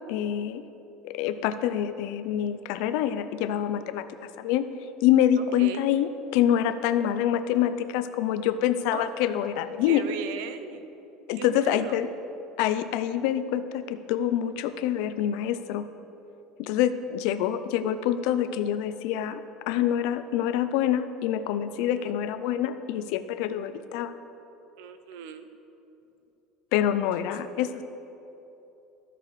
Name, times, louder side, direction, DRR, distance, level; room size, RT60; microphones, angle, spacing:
voice 1, 0.1-0.6 1.0-4.1 4.4-4.7 5.0-10.0 11.3-12.1 12.6-15.9 16.6-24.1 26.7-27.8, left 10 dB, 60° left, 12 dB, 0.4 m, -26 dB
voice 2, 5.4-5.9 8.9-9.1 9.9-10.9 11.3-12.0 21.8-22.2 24.8-25.5, right 7 dB, 75° right, 10 dB, 0.5 m, -38 dB
13.0 x 6.7 x 3.2 m, 2.9 s
cardioid pair, 180°, 0 cm